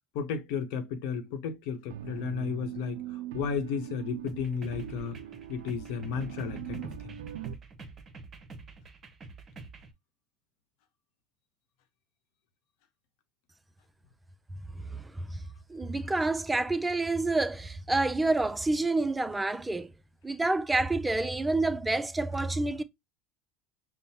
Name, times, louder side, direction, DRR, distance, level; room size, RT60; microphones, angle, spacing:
voice 1, 0.1-5.2 5.5-7.2, left 6 dB, 70° left, 0.8 m, -34 dB
sound 1, 1.9-7.5, right 11 dB, 85° right, 0.3 m, -41 dB
sound 2, 4.3-9.9, right 3 dB, 35° right, 0.8 m, -47 dB
voice 2, 14.9-15.4 15.7-19.9 20.2-22.8, right 2 dB, 10° right, 0.4 m, -28 dB
5.4 x 2.0 x 2.8 m
supercardioid pair, 95°, 0 cm